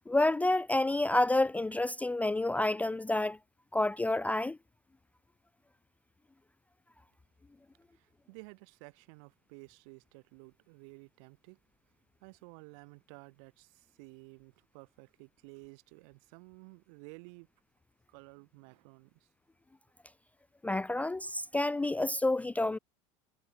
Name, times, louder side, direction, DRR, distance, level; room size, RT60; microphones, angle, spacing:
voice 1, 0.1-3.4 3.7-4.6 20.6-22.8, left 2 dB, 10° left, 0.4 m, -29 dB
voice 2, 7.9-11.6 12.2-17.5 18.1-19.3, right 34 dB, 70° right, 6.9 m, -53 dB
supercardioid pair, 110°, 17 cm